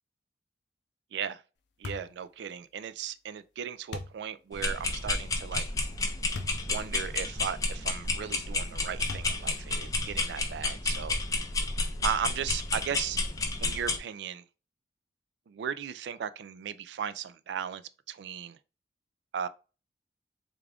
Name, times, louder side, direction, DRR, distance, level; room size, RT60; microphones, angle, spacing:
voice 1, 1.1-1.4 1.8-5.6 6.6-11.2 12.0-13.2 13.6-14.4 15.5-18.6 19.3-19.5, right 8 dB, 75° right, 0.3 m, -36 dB
sound 1, 1.8-2.2 3.9-4.2 6.3-6.6 7.2-7.3 9.1-9.6, left 3 dB, 90° left, 0.5 m, -38 dB
sound 2, 4.5-14.0, left 3 dB, 20° left, 0.4 m, -31 dB
3.6 x 2.3 x 3.4 m
head